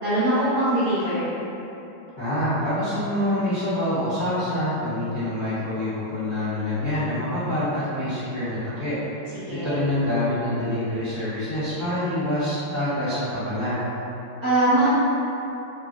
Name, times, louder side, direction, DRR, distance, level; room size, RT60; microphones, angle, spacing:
voice 1, 0.0-1.3 9.5-9.8 14.4-14.9, right 1 dB, 60° right, -13 dB, 1.0 m, -22 dB
voice 2, 2.2-8.9 9.6-13.8, left 1 dB, 50° left, -16 dB, 0.5 m, -26 dB
3.3 x 2.6 x 2.4 m, 3.0 s
omnidirectional pair, 2.3 m